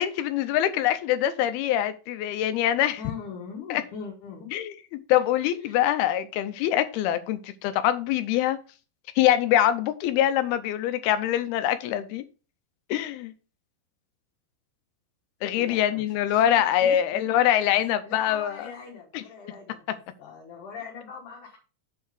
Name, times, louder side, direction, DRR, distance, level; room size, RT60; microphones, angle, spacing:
voice 1, 0.0-3.0 3.7-3.8 4.5-8.6 9.2-12.2 12.9-13.3 15.4-18.7 19.1-19.2, left 11 dB, 85° left, 2.5 m, -24 dB
voice 2, 3.0-4.5 5.6-5.8 15.5-17.3 17.7-21.6, left 6 dB, 60° left, 2.6 m, -41 dB
7.5 x 4.6 x 4.9 m
omnidirectional pair, 4.7 m